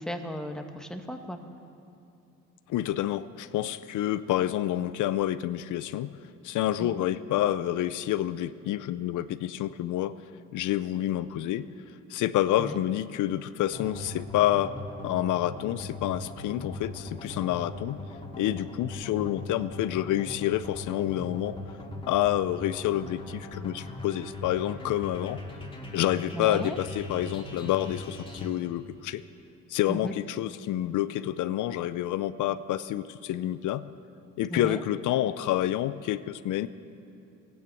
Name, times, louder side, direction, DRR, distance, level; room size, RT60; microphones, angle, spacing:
voice 1, 0.0-1.4 6.8-7.1 12.6-12.8 26.3-26.8 29.9-30.1 34.5-34.8, equal, ahead, 5 dB, 1.4 m, -35 dB
voice 2, 2.7-6.2 6.4-10.2 10.5-11.7 12.1-14.7 15.0-18.0 18.4-21.6 22.0-25.4 25.9-29.2 29.7-33.8 34.4-36.7, left 13 dB, 80° left, 14 dB, 0.6 m, -28 dB
sound 1, 13.7-28.5, left 2 dB, 20° left, 2.6 m, -40 dB
17.5 x 9.4 x 8.4 m, 2.7 s
cardioid pair, 90°, 30 cm